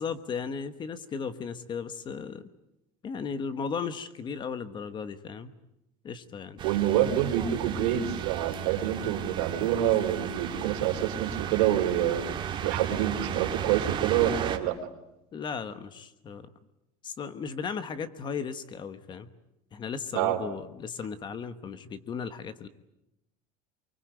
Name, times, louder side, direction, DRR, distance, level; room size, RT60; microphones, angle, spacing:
voice 1, 0.0-2.4 3.0-5.5 6.0-6.6 15.3-16.5 17.0-19.3 19.7-22.7, left 6 dB, 25° left, 12 dB, 1.2 m, -36 dB
sound 1, 6.6-14.6, right 9 dB, 25° right, 1.9 m, -34 dB
voice 2, 6.6-12.3 12.6-14.8 20.1-20.4, right 11 dB, 85° right, 6 dB, 3.5 m, -27 dB
24.5 x 24.0 x 9.2 m, 0.87 s
cardioid pair, 165°, 18 cm